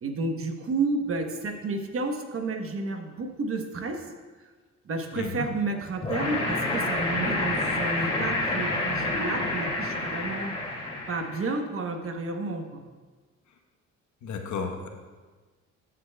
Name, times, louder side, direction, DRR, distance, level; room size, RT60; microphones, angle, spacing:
voice 1, 0.0-4.1 4.8-10.5 11.1-12.8, right 3 dB, 45° right, 4 dB, 1.1 m, -31 dB
voice 2, 5.1-5.5 14.2-14.9, left 5 dB, 75° left, 3 dB, 1.2 m, -33 dB
sound 1, 6.0-11.5, left 2 dB, 20° left, 2.4 m, -28 dB
14.5 x 7.6 x 2.3 m, 1.4 s
cardioid pair, 90°, 30 cm